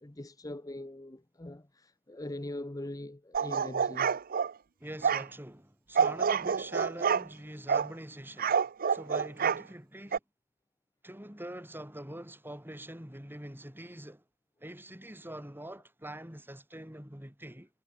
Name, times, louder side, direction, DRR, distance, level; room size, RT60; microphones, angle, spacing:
voice 1, 0.0-4.2, left 1 dB, 15° left, 0.9 m, -42 dB
sound 1, 3.3-4.5 5.0-5.3 5.9-7.3 7.7-7.9 8.4-9.6 10.1-10.2, right 6 dB, 40° right, 0.6 m, -28 dB
voice 2, 4.8-8.6 8.9-10.2 11.0-14.2 14.6-17.7, right 1 dB, 10° right, 4.6 m, -44 dB
head